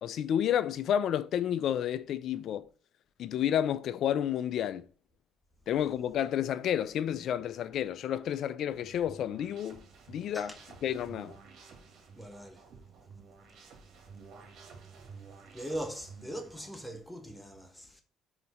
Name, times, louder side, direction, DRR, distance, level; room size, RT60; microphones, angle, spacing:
voice 1, 0.0-2.7 3.2-4.9 5.7-9.8 10.1-10.5 10.8-11.3, left 10 dB, 65° left, 0.5 m, -30 dB
sound 1, 8.7-16.7, right 5 dB, 65° right, 2.0 m, -52 dB
voice 2, 12.1-12.7 15.5-18.0, right 1 dB, 5° left, 1.2 m, -40 dB
5.1 x 4.0 x 4.9 m
supercardioid pair, 70°, 0 cm